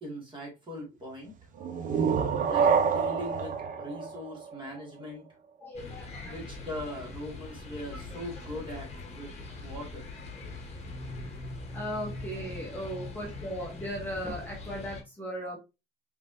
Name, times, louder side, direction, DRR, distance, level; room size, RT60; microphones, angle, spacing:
voice 1, 0.0-1.3 2.4-5.3 6.2-8.9 9.1-9.3 9.6-10.1, equal, 25° right, -2 dB, 2.3 m, -40 dB
sound 1, 1.6-5.2, right 6 dB, 40° right, 0.6 m, -28 dB
voice 2, 1.7-2.1 4.0-4.1 5.6-6.4 7.9-8.0 11.2-11.3 11.7-15.6, equal, 10° left, -3 dB, 1.1 m, -37 dB
sound 2, 5.7-15.0, left 2 dB, 35° left, 1.2 m, -42 dB
5.0 x 3.5 x 2.7 m, 0.26 s
cardioid pair, 155°, 20 cm